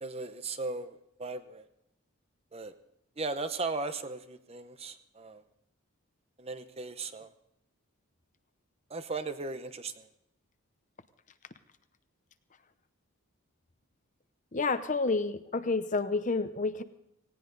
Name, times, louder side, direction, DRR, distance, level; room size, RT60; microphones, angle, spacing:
voice 1, 0.0-1.7 2.5-2.7 3.2-5.4 6.4-7.3 8.9-10.1, right 3 dB, 30° right, 10 dB, 0.8 m, -37 dB
voice 2, 14.5-16.8, left 3 dB, 35° left, 11 dB, 0.7 m, -29 dB
18.0 x 17.5 x 4.0 m, 0.81 s
head